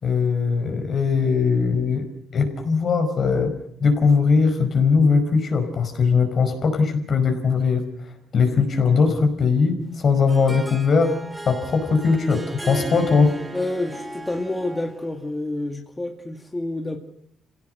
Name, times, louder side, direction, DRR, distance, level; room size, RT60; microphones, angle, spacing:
voice 1, 0.0-7.8 8.3-11.1 11.4-13.3, left 5 dB, 50° left, 6 dB, 5.0 m, -20 dB
Harp, 9.9-15.2, right 1 dB, 10° right, 2.8 m, -36 dB
voice 2, 13.5-17.0, left 2 dB, 15° left, 3 dB, 2.0 m, -28 dB
26.5 x 17.0 x 6.6 m, 0.69 s
cardioid pair, 90°, 0 cm